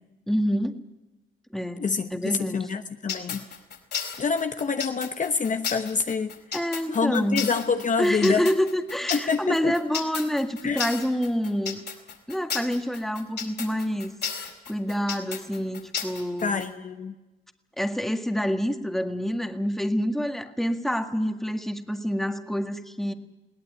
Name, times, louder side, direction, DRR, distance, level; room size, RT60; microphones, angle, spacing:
voice 1, 0.3-0.8 1.5-2.7 6.5-7.4 8.0-11.8 12.3-16.6 17.8-23.1, equal, ahead, 6 dB, 1.9 m, -27 dB
voice 2, 1.8-3.4 4.2-6.6 6.9-8.5 9.1-9.8 10.6-10.8 16.4-17.1, left 5 dB, 40° left, 7 dB, 1.1 m, -27 dB
sound 1, 3.1-16.7, left 7 dB, 60° left, 4.3 m, -33 dB
21.0 x 17.5 x 9.5 m, 1.1 s
cardioid pair, 90°, 20 cm